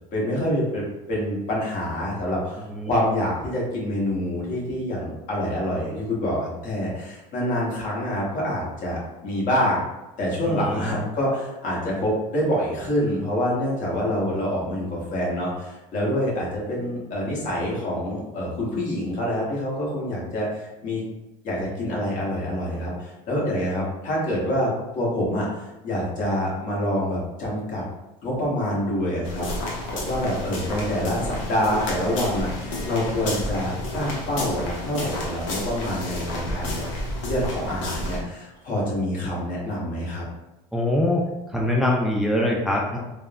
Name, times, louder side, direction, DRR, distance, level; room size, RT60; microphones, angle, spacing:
voice 1, 0.1-0.8 1.1-9.8 10.2-21.0 21.4-27.8 28.2-29.5 29.9-36.8 37.2-40.2, equal, 55° left, -4 dB, 1.2 m, -26 dB
voice 2, 10.5-10.9 40.7-41.2 41.5-43.0, left 1 dB, ahead, -2 dB, 0.4 m, -23 dB
sound 1, 29.2-38.2, left 1 dB, 85° left, 0.7 m, -31 dB
3.4 x 2.0 x 2.3 m, 1.0 s
supercardioid pair, 105°, 16 cm